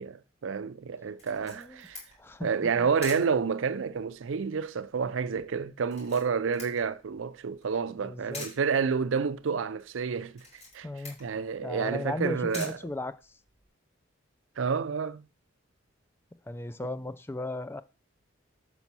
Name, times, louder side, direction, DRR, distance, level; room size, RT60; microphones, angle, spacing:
voice 1, 0.0-2.0 2.4-10.5 10.7-10.9 11.2-12.8 14.6-15.3, right 5 dB, 70° right, 0.5 m, -29 dB
Camera, 1.2-13.7, left 2 dB, 35° left, 3.8 m, -49 dB
voice 2, 1.4-1.9 2.2-2.9 8.0-8.5 10.8-11.2 11.6-13.4 16.5-17.8, left 2 dB, 10° left, 0.3 m, -36 dB
6.1 x 5.5 x 6.0 m
head